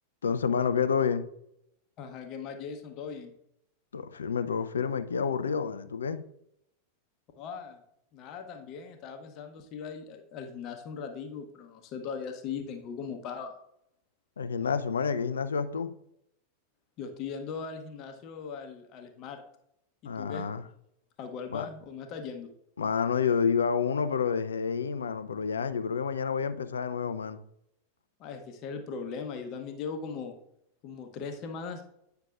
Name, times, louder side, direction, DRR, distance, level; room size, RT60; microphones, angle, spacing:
voice 1, 0.2-1.3 3.9-6.2 14.4-15.9 20.1-20.6 21.5-21.7 22.8-27.4, left 6 dB, 70° left, 12 dB, 0.5 m, -29 dB
voice 2, 2.0-3.3 7.4-7.8 8.1-13.5 17.0-19.4 20.0-20.5 21.2-22.5 28.2-30.4 30.8-31.8, left 5 dB, 40° left, 5 dB, 0.8 m, -39 dB
9.1 x 5.7 x 2.4 m, 0.76 s
figure-of-eight pair, 90°, 0 cm